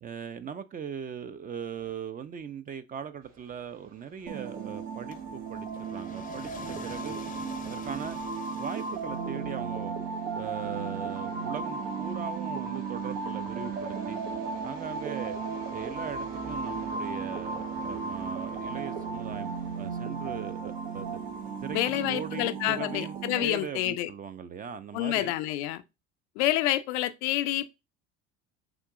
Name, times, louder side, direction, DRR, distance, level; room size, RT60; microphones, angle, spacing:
voice 1, 0.0-7.1 7.6-8.2 8.6-9.9 10.3-14.2 14.6-15.4 15.7-21.1 21.6-25.3, right 7 dB, 25° right, 0.4 m, -39 dB
sound 1, 3.2-22.3, right 3 dB, 55° right, 1.8 m, -52 dB
sound 2, 4.3-23.5, right 5 dB, 80° right, 0.8 m, -35 dB
sound 3, 5.1-9.5, left 5 dB, 25° left, 0.6 m, -46 dB
voice 2, 21.7-24.1 24.9-25.8 26.4-27.7, left 15 dB, 75° left, 0.5 m, -28 dB
3.7 x 2.9 x 3.5 m
hypercardioid pair, 70°, 34 cm